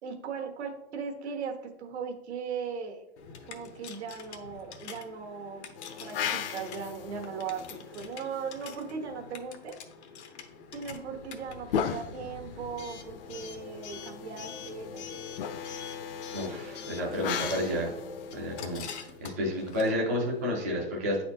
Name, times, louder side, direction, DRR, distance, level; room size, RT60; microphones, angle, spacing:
voice 1, 0.0-3.0 3.4-5.7 6.0-9.8 10.7-15.3, right 6 dB, 80° right, 3 dB, 1.3 m, -38 dB
Coin (dropping) / Alarm, 3.2-20.6, left 6 dB, 90° left, 0.9 m, -47 dB
sound 1, 5.8-8.9 10.7-19.7, left 8 dB, 60° left, 0.5 m, -38 dB
voice 2, 16.3-17.9 18.3-18.9 19.2-21.2, left 1 dB, 15° right, -4 dB, 0.3 m, -30 dB
9.1 x 4.2 x 2.7 m, 0.87 s
supercardioid pair, 175°, 33 cm